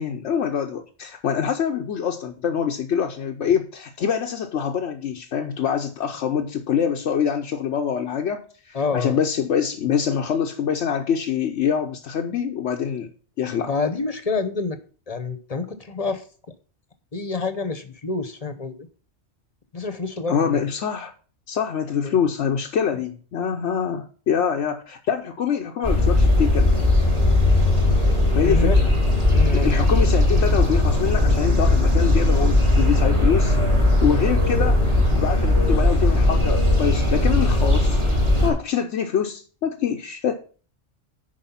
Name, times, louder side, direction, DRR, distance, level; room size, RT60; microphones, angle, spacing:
voice 1, 0.0-13.1 13.4-13.7 20.3-21.1 21.5-26.7 28.3-28.7 29.5-33.6 34.0-34.8 35.2-38.0 38.4-40.4, left 7 dB, 85° left, 2 dB, 1.1 m, -25 dB
voice 2, 8.7-9.2 13.7-14.8 15.1-16.2 17.1-18.9 19.7-20.6 22.0-22.1 28.0-28.1 28.4-28.8 29.3-29.7 34.0-34.3, left 4 dB, 35° left, 10 dB, 1.0 m, -28 dB
sound 1, 25.8-38.5, left 1 dB, 25° right, 2.1 m, -18 dB
10.5 x 4.7 x 5.7 m, 0.40 s
omnidirectional pair, 1.2 m